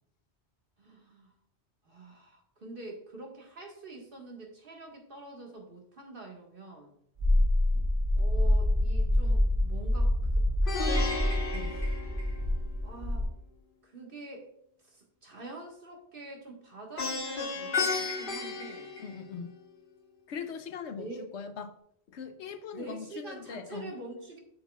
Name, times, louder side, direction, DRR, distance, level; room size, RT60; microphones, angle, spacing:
voice 1, 0.8-1.3 1.9-6.9 8.2-11.2 12.8-13.3 13.8-14.5 14.8-18.9 21.0-21.3 22.7-24.4, right 2 dB, 55° right, 1 dB, 1.7 m, -45 dB
sound 1, 7.2-13.2, left 1 dB, 75° right, 2.9 m, -26 dB
Plucked string instrument, 10.7-12.8 17.0-19.6, left 3 dB, 55° left, 1.4 m, -33 dB
voice 2, 19.0-19.6 20.3-21.8 22.1-23.9, left 6 dB, 85° left, 10 dB, 1.0 m, -41 dB
8.1 x 6.6 x 2.3 m, 0.71 s
omnidirectional pair, 1.1 m